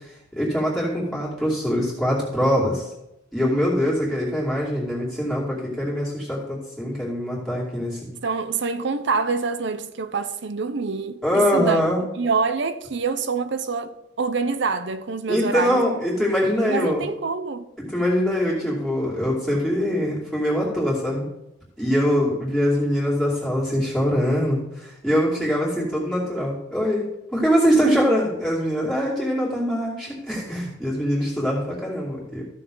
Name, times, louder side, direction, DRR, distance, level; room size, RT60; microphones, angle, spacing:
voice 1, 0.3-2.8 3.3-8.1 11.2-12.0 15.3-17.0 17.8-21.2 21.8-32.4, equal, 5° left, 2.7 m, -23 dB
voice 2, 8.2-11.8 12.2-15.8 16.7-17.7, right 4 dB, 60° right, 0.6 m, -26 dB
14.0 x 6.4 x 3.9 m
head